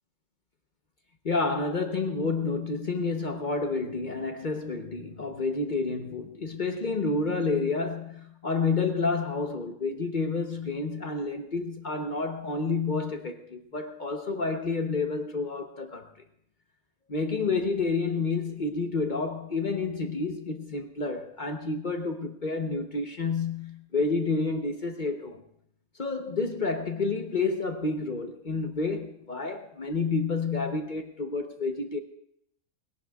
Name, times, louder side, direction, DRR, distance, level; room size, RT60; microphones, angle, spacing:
voice 1, 1.2-16.1 17.1-25.4 26.0-32.0, left 3 dB, 40° left, 0.9 m, -29 dB
21.0 x 17.5 x 2.3 m
omnidirectional pair, 1.5 m